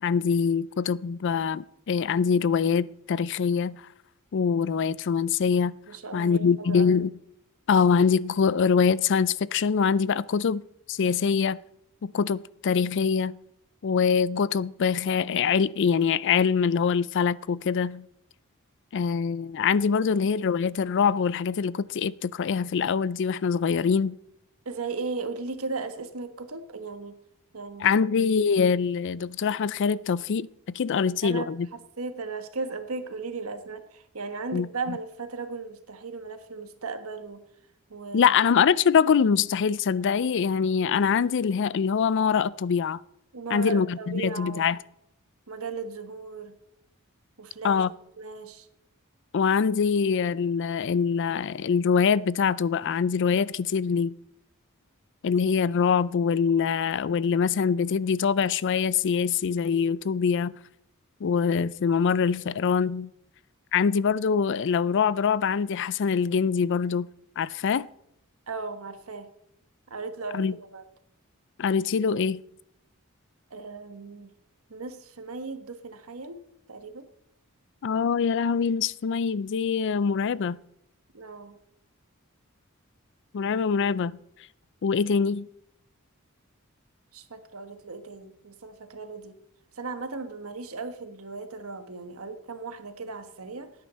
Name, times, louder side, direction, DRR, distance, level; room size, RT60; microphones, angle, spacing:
voice 1, 0.0-3.8 4.3-5.8 6.1-7.1 7.7-10.6 10.9-11.6 12.0-13.4 13.8-18.1 18.9-24.2 27.8-30.5 30.7-31.7 34.5-35.0 38.1-43.0 43.5-44.8 47.6-47.9 49.3-54.1 55.2-60.5 61.2-63.1 63.7-67.1 67.4-67.9 70.3-70.5 71.6-72.4 77.8-80.6 83.3-84.2 84.8-85.5, left 6 dB, 55° left, 0.4 m, -24 dB
voice 2, 5.9-6.9 24.6-27.1 27.5-28.0 30.9-37.4 37.9-38.3 43.3-44.7 45.5-46.5 47.4-47.8 48.2-48.7 68.5-69.3 69.9-70.8 73.5-74.3 74.7-76.4 76.7-77.1 81.1-81.6 87.1-89.3 89.8-93.7, right 4 dB, 75° right, 1.3 m, -37 dB
17.0 x 9.6 x 4.2 m
head